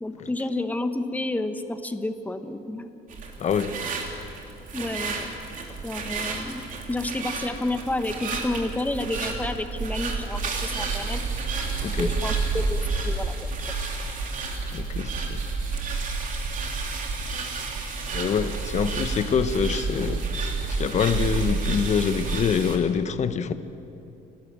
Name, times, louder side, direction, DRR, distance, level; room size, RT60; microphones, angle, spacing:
voice 1, 0.0-2.9 4.7-5.3 5.8-6.6 6.9-11.2 12.0-13.5, left 2 dB, 10° left, 1.2 m, -30 dB
sound 1, 3.1-22.8, right 4 dB, 50° right, 3.2 m, -30 dB
voice 2, 3.4-3.7 11.8-12.1 14.7-15.4 18.1-20.2 20.7-23.5, left 7 dB, 45° left, 1.0 m, -25 dB
30.0 x 12.0 x 7.5 m
cardioid pair, 110°, 17 cm